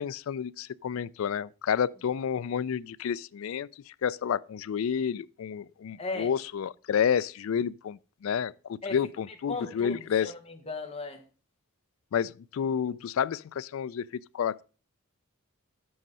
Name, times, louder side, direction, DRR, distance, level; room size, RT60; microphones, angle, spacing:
voice 1, 0.0-10.3 12.1-14.6, left 8 dB, 70° left, 0.3 m, -30 dB
voice 2, 6.0-6.3 8.8-9.0 9.5-11.2, left 3 dB, 30° left, 1.2 m, -36 dB
7.9 x 6.3 x 5.4 m
head